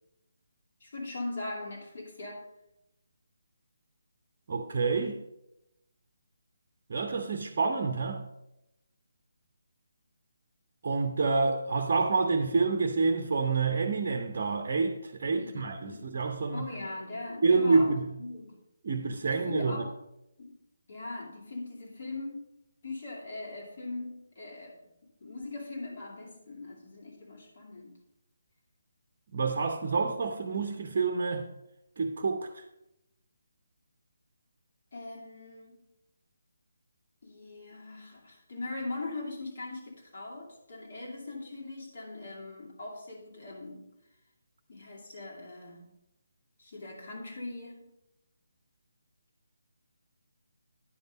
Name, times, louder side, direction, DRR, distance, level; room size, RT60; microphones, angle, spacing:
voice 1, 0.8-2.5 15.3-16.1 16.5-17.9 18.2-18.6 19.2-20.0 20.4-20.6 20.9-22.5 22.8-28.0 34.9-35.8 37.2-43.9 44.7-45.9 46.6-47.9, left 2 dB, 50° left, -2 dB, 2.4 m, -40 dB
voice 2, 4.5-5.2 6.9-8.2 10.8-16.7 17.4-18.1 18.8-19.9 29.3-31.5 32.0-32.5, right 4 dB, 45° right, 6 dB, 0.7 m, -28 dB
10.0 x 5.3 x 5.2 m, 0.87 s
figure-of-eight pair, 145°, 0 cm